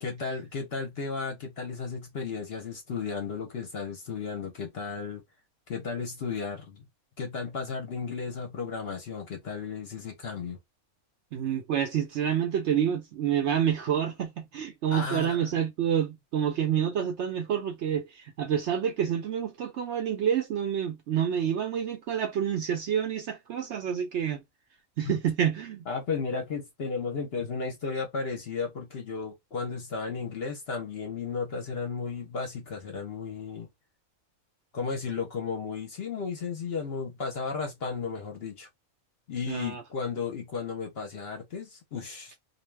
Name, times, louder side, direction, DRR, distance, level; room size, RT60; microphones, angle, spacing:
voice 1, 0.0-5.2 5.7-6.8 7.2-10.6 14.9-15.5 25.0-25.2 25.9-33.7 34.7-38.7 39.3-42.3, left 5 dB, 55° left, 0.8 m, -34 dB
voice 2, 11.3-24.4 25.0-25.8 39.5-39.8, right 9 dB, 65° right, 0.7 m, -28 dB
2.4 x 2.2 x 3.2 m
omnidirectional pair, 1.5 m